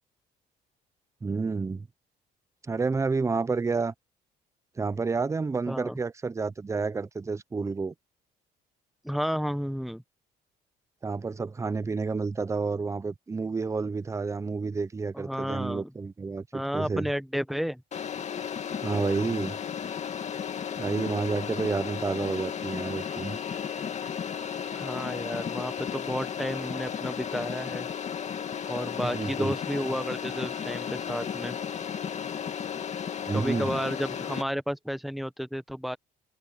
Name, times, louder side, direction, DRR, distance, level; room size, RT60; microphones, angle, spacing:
voice 1, 1.2-1.9 2.7-3.9 4.8-7.9 11.0-17.1 18.8-19.6 20.8-23.4 29.0-29.5 33.3-33.8, right 4 dB, 15° right, 0.7 m, -30 dB
voice 2, 5.7-6.0 9.0-10.0 15.1-15.9 16.5-17.8 24.7-27.9 28.7-31.6 33.3-36.0, equal, ahead, 1.3 m, -32 dB
sound 1, 17.9-34.4, left 8 dB, 45° left, 2.2 m, -34 dB
cardioid pair, 110°, 17 cm